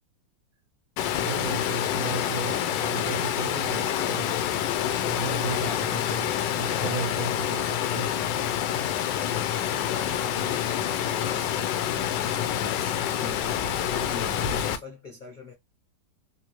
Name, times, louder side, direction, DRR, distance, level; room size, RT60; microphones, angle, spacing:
Water, 1.0-14.8, left 10 dB, 85° left, 1.2 m, -27 dB
voice 1, 1.1-4.4 5.0-8.1, right 6 dB, 70° right, 0.9 m, -35 dB
sound 1, 4.3-14.7, left 8 dB, 65° left, 1.2 m, -39 dB
voice 2, 9.0-15.5, left 2 dB, 45° left, 0.6 m, -43 dB
3.4 x 2.3 x 2.9 m
omnidirectional pair, 1.9 m